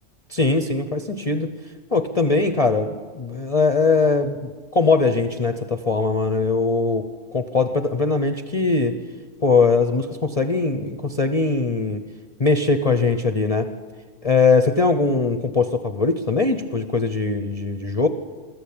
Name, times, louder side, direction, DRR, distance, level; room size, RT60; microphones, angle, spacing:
voice 1, 0.3-1.5 1.9-7.1 7.3-9.0 9.4-12.0 12.4-13.7 14.2-18.1, left 4 dB, 35° left, 8 dB, 0.8 m, -21 dB
23.0 x 14.0 x 8.7 m, 1.5 s
omnidirectional pair, 1.3 m